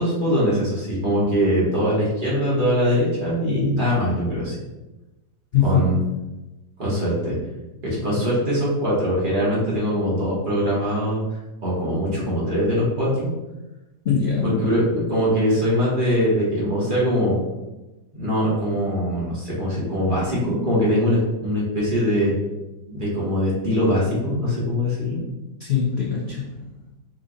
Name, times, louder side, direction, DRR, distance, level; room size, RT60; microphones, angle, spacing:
voice 1, 0.0-4.6 5.6-6.0 6.8-7.3 7.8-13.3 14.6-17.4 18.1-22.3 22.9-25.2, equal, 30° right, -7 dB, 1.3 m, -22 dB
voice 2, 5.5-6.0 14.0-14.7 25.6-26.6, left 6 dB, 75° left, -4 dB, 0.5 m, -22 dB
4.8 x 2.5 x 3.9 m, 1.0 s
omnidirectional pair, 2.0 m